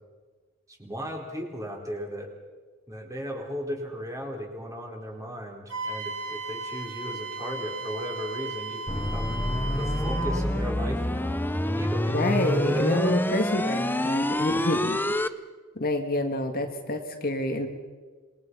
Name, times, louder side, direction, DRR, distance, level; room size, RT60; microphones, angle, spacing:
voice 1, 0.7-2.3 2.9-9.4 9.8-13.2 14.6-14.8, equal, 15° right, 1 dB, 4.5 m, -36 dB
Wind instrument woodwind instrument, 5.7-10.3, right 2 dB, 65° right, 7.9 m, -35 dB
sound 1, 8.9-15.3, left 1 dB, 10° left, 0.8 m, -27 dB
voice 2, 12.1-15.0 15.8-17.7, left 1 dB, 45° left, 5 dB, 2.0 m, -28 dB
27.5 x 22.5 x 5.7 m, 1.4 s
head